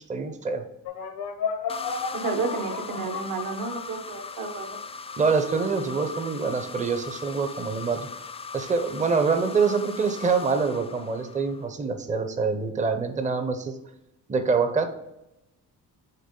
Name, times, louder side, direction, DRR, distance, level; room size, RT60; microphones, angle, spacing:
voice 1, 0.1-0.6 5.2-8.1 8.5-13.8 14.3-14.9, right 5 dB, 20° right, 7 dB, 0.7 m, -25 dB
sound 1, 0.8-4.4, left 6 dB, 85° left, 1.0 m, -33 dB
sound 2, 1.7-11.7, left 4 dB, 20° left, 0.3 m, -39 dB
voice 2, 2.1-4.8, right 4 dB, 65° right, 4 dB, 1.3 m, -31 dB
6.6 x 3.8 x 3.8 m, 0.90 s
cardioid pair, 105°, 35 cm